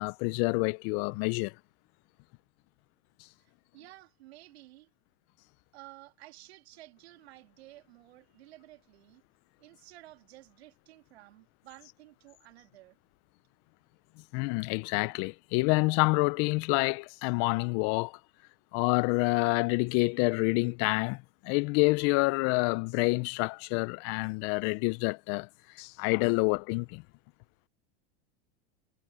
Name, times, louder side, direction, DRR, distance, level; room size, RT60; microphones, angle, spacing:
voice 1, 0.0-1.5 14.3-18.2 18.7-25.5 25.8-27.0, left 28 dB, 45° left, 0.5 m, -28 dB
voice 2, 3.4-4.9 5.7-9.2 9.6-13.0, right 17 dB, 85° right, 3.0 m, -53 dB
supercardioid pair, 135°, 31 cm